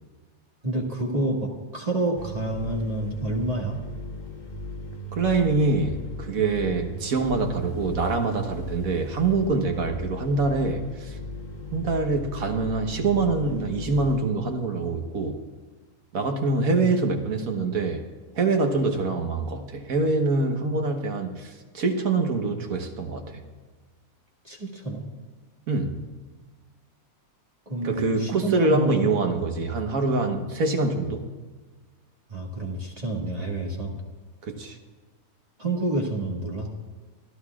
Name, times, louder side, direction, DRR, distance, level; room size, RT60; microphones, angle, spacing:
voice 1, 0.6-3.8 24.4-25.1 27.7-29.5 32.3-34.0 35.6-36.7, right 2 dB, 25° right, -2 dB, 1.9 m, -29 dB
The laundrymachine, 2.2-14.2, left 1 dB, 35° left, 1.1 m, -37 dB
voice 2, 5.1-11.2 11.7-15.4 16.1-18.0 18.4-23.4 25.7-26.0 27.8-31.3 34.5-34.8, right 3 dB, 75° right, 4 dB, 1.6 m, -25 dB
25.5 x 12.5 x 2.4 m, 1.4 s
omnidirectional pair, 1.5 m